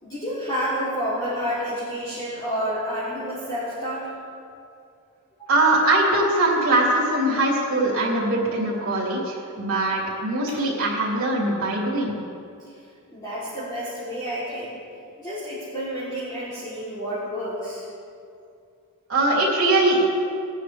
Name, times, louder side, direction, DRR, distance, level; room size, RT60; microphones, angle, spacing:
voice 1, 0.0-4.1 5.4-5.5 13.1-14.8 15.2-17.8, equal, 20° left, -12 dB, 3.4 m, -29 dB
voice 2, 5.5-12.2 19.1-20.0, right 2 dB, 70° right, -6 dB, 3.2 m, -21 dB
20.0 x 9.8 x 3.5 m, 2.4 s
head